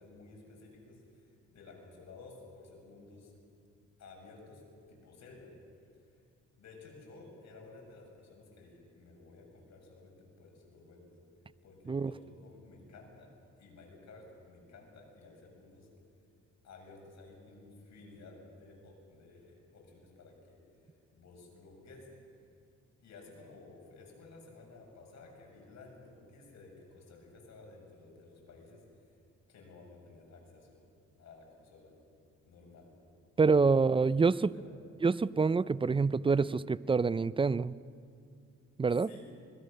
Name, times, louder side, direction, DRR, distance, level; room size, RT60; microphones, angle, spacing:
voice 1, 0.0-3.3 4.0-4.6 4.9-5.5 6.6-11.1 11.6-13.3 13.6-15.9 16.6-20.6 21.1-22.1 23.0-28.8 29.5-30.8 31.2-31.9 32.5-32.9 34.5-34.7 39.0-39.3, left 3 dB, 65° left, 0 dB, 7.1 m, -54 dB
voice 2, 33.4-34.5 35.0-37.8 38.8-39.1, right 4 dB, 15° right, 18 dB, 0.5 m, -26 dB
25.5 x 22.0 x 6.6 m, 2.4 s
cardioid pair, 90°, 30 cm